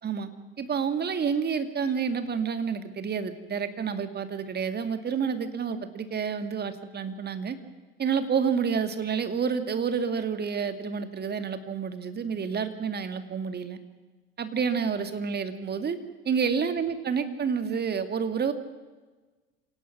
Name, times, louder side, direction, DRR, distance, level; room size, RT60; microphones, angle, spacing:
voice 1, 0.6-7.6 8.0-13.8 14.4-16.0 16.2-18.5, right 6 dB, 35° right, 9 dB, 2.2 m, -29 dB
27.0 x 18.0 x 6.1 m, 1.3 s
hypercardioid pair, 70°, 30 cm